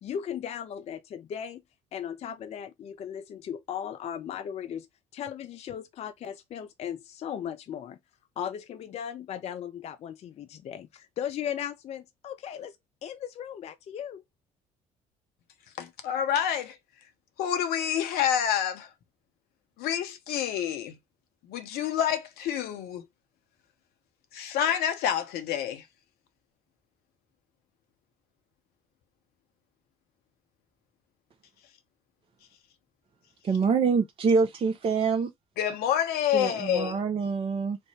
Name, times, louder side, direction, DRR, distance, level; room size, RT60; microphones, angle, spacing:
voice 1, 0.0-1.6 1.9-4.9 5.1-8.0 8.4-12.8 13.0-14.2, left 9 dB, 35° left, 0.4 m, -37 dB
voice 2, 15.8-16.8 17.4-18.9 19.8-21.0 21.4-23.1 24.3-25.8 35.6-37.0, left 9 dB, 60° left, 0.8 m, -28 dB
voice 3, 33.4-35.3 36.3-37.8, right 5 dB, 30° right, 0.5 m, -25 dB
3.4 x 2.1 x 4.2 m
figure-of-eight pair, 55°, 19 cm